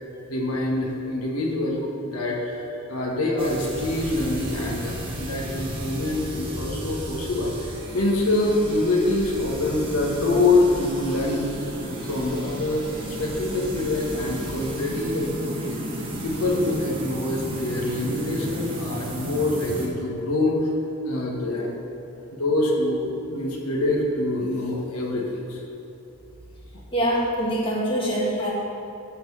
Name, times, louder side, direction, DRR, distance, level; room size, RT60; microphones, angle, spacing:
voice 1, 0.3-7.5 7.9-11.5 11.8-15.3 15.6-15.8 16.2-20.7 21.0-21.8 22.3-25.6, left 2 dB, 90° left, -3 dB, 1.7 m, -25 dB
sound 1, 3.4-19.9, equal, 25° right, 1.4 m, -33 dB
voice 2, 26.9-28.5, equal, 25° left, -5 dB, 1.9 m, -24 dB
13.0 x 4.4 x 7.1 m, 2.9 s
head